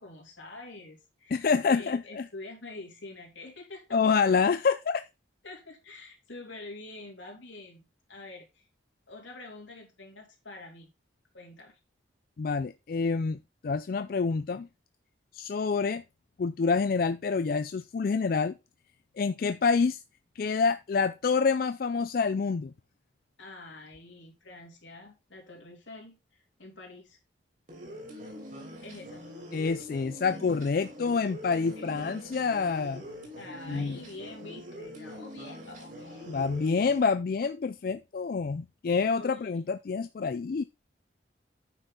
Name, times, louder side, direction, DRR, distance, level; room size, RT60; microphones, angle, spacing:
voice 1, 0.0-4.0 4.2-4.3 5.4-8.7 9.1-10.9 11.3-11.8 23.4-27.2 28.8-29.3 31.5-32.3 33.4-36.7 39.2-39.6, left 2 dB, 80° left, 3.1 m, -46 dB
voice 2, 1.3-2.3 3.9-5.1 12.4-14.7 15.3-16.0 16.4-18.6 19.2-20.0 20.4-22.7 29.5-33.0 33.7-34.0 36.3-40.6, left 5 dB, 50° left, 0.3 m, -27 dB
sound 1, 27.7-37.0, equal, 45° right, 3.2 m, -44 dB
9.1 x 5.7 x 3.9 m
head